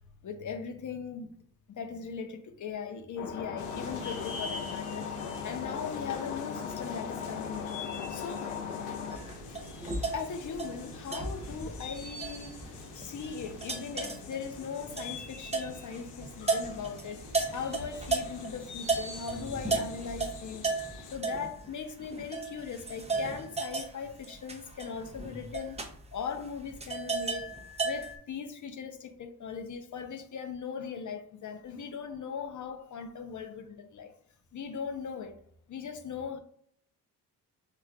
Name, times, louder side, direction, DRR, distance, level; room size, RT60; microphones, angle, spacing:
voice 1, 0.2-1.4 1.7-5.2 5.4-7.7 8.1-8.5 10.1-17.2 17.5-20.7 21.1-25.8 26.1-27.5 27.8-34.1 34.5-35.4 35.7-36.4, left 6 dB, 40° left, 0.6 m, -39 dB
sound 1, 3.2-9.2, left 7 dB, 85° left, 0.6 m, -38 dB
sound 2, 3.6-21.1, left 3 dB, 60° left, 1.0 m, -45 dB
sound 3, 9.1-18.5 18.8-28.2, right 3 dB, 15° right, 0.7 m, -35 dB
4.3 x 2.2 x 2.3 m
hypercardioid pair, 50°, 47 cm